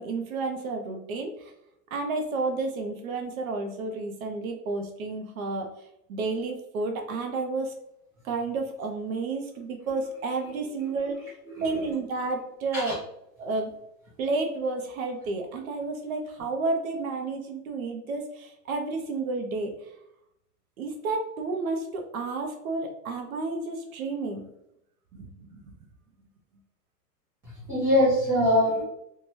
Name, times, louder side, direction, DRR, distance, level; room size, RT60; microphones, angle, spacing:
voice 1, 0.0-1.5 1.9-5.7 6.1-7.7 8.2-11.3 11.6-13.0 13.4-13.7 14.2-19.7 20.8-24.4 25.1-25.6, right 3 dB, 60° right, 3 dB, 0.6 m, -31 dB
voice 2, 11.5-11.8 12.7-12.9 27.7-28.8, left 1 dB, 5° right, -11 dB, 0.4 m, -23 dB
2.7 x 2.2 x 3.0 m, 0.81 s
hypercardioid pair, 150°, 48 cm